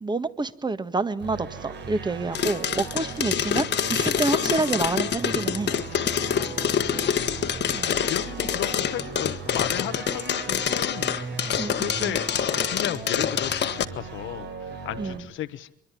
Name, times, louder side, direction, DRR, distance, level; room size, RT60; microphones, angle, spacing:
voice 1, 0.0-5.7 7.7-7.9 11.6-12.2 15.0-15.2, right 3 dB, 20° right, 12 dB, 1.6 m, -28 dB
sound 1, 1.2-15.2, right 5 dB, 65° right, 4.6 m, -37 dB
sound 2, 2.3-13.8, left 9 dB, 60° left, 1.5 m, -26 dB
voice 2, 6.3-7.2 7.6-11.1 11.4-12.2 12.6-15.8, left 12 dB, 80° left, 12 dB, 1.2 m, -35 dB
24.0 x 23.5 x 9.8 m, 0.72 s
cardioid pair, 90°, 20 cm